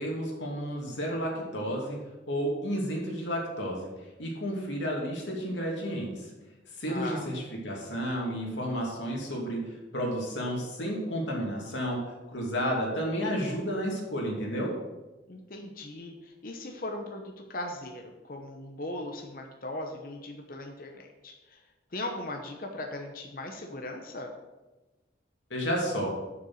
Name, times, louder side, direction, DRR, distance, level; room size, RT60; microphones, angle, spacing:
voice 1, 0.0-2.0 2.3-3.9 4.2-6.2 6.8-14.8 25.5-26.1, equal, 90° left, -2 dB, 2.7 m, -31 dB
voice 2, 6.9-7.3 15.3-21.6 21.9-24.3, left 1 dB, 50° left, 2 dB, 0.9 m, -39 dB
7.2 x 6.6 x 6.4 m, 1.1 s
head